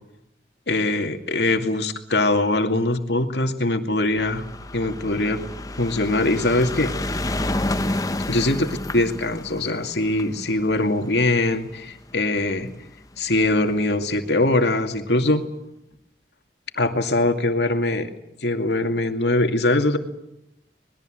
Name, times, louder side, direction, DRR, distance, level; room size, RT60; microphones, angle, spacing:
voice 1, 0.7-4.4 4.7-5.4 5.8-6.9 8.3-8.6 8.9-12.7 13.2-15.4 16.8-18.1 18.4-20.0, left 2 dB, 75° left, 5 dB, 2.4 m, -22 dB
sound 1, 4.1-12.6 13.4-13.5 13.7-13.8 14.1-14.2, left 1 dB, 20° left, 0.9 m, -30 dB
26.5 x 21.0 x 7.7 m, 0.85 s
head